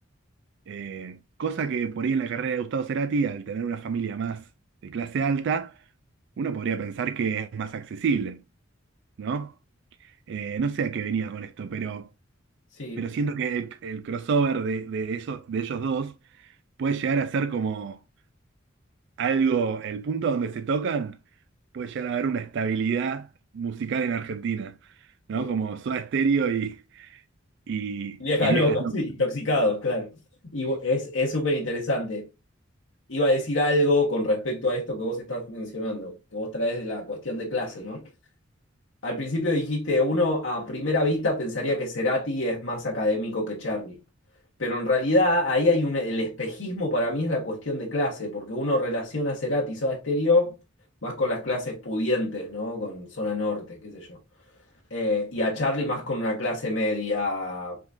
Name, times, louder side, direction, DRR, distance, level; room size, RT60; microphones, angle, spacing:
voice 1, 0.7-4.5 4.8-5.8 6.4-8.4 9.2-9.5 10.0-12.1 13.0-16.5 16.8-18.0 19.2-21.2 21.7-27.2 27.7-28.9, right 5 dB, 65° right, 0.3 m, -28 dB
voice 2, 28.2-30.1 30.5-32.3 33.1-38.0 39.0-44.0 44.6-50.6 51.0-54.2 54.9-57.8, left 1 dB, 70° left, 1.3 m, -26 dB
5.0 x 3.7 x 2.5 m
head